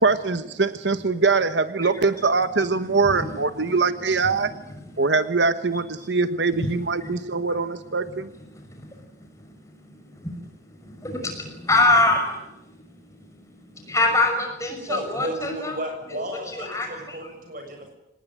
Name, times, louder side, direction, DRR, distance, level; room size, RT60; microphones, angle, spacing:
voice 1, 0.0-4.5 5.0-8.3, right 4 dB, 85° right, 11 dB, 1.1 m, -22 dB
voice 2, 8.5-9.1 9.4-12.9 13.2-15.7 16.6-17.2, left 2 dB, 15° left, 3 dB, 6.0 m, -25 dB
voice 3, 14.9-17.9, right 1 dB, 50° right, 5 dB, 7.3 m, -33 dB
25.5 x 19.0 x 9.2 m, 0.90 s
head